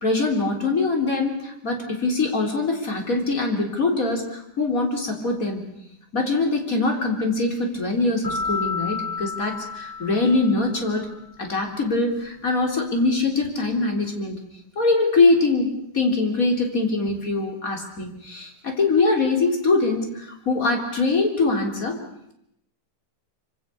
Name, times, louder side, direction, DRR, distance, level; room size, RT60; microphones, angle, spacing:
voice 1, 0.0-5.7 6.1-11.1 11.4-14.4 14.8-22.0, left 3 dB, 60° left, 2 dB, 4.1 m, -23 dB
sound 1, 8.2-11.0, left 4 dB, 80° left, 8.6 m, -31 dB
25.5 x 25.5 x 6.8 m, 0.77 s
omnidirectional pair, 1.7 m